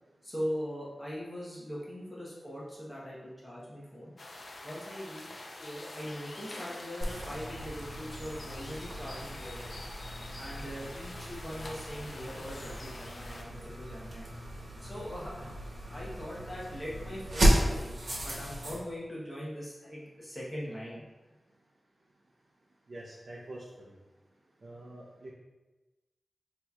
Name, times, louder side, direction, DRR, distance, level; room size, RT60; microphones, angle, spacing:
voice 1, 0.2-4.1 4.6-9.9 10.3-14.3 14.8-15.5 15.9-17.9 18.2-21.0, equal, 25° left, -6 dB, 1.0 m, -41 dB
sound 1, 4.2-13.4, left 2 dB, 60° left, 0.5 m, -46 dB
sound 2, 7.0-18.8, right 1 dB, 85° right, 1.1 m, -34 dB
voice 2, 22.9-23.9 24.6-25.3, right 1 dB, 60° right, -4 dB, 0.6 m, -46 dB
6.0 x 2.9 x 2.3 m, 1.1 s
wide cardioid pair, 80°, 0 cm